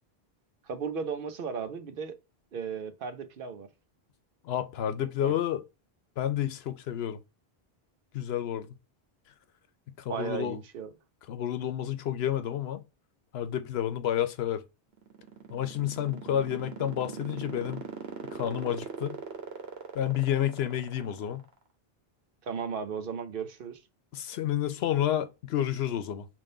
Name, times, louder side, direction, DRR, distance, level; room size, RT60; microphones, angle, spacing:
voice 1, 0.7-2.2 2.5-3.7 5.2-5.3 10.1-10.9 22.4-23.8, right 6 dB, 65° right, 0.8 m, -35 dB
voice 2, 4.4-5.6 6.2-7.2 8.1-8.7 10.0-10.6 11.3-12.8 13.3-14.6 15.5-17.8 18.3-19.2 19.9-21.4 24.1-26.3, left 11 dB, 80° left, 0.8 m, -30 dB
sound 1, 14.9-21.5, right 6 dB, 80° right, 1.2 m, -39 dB
3.6 x 2.6 x 3.7 m
omnidirectional pair, 1.0 m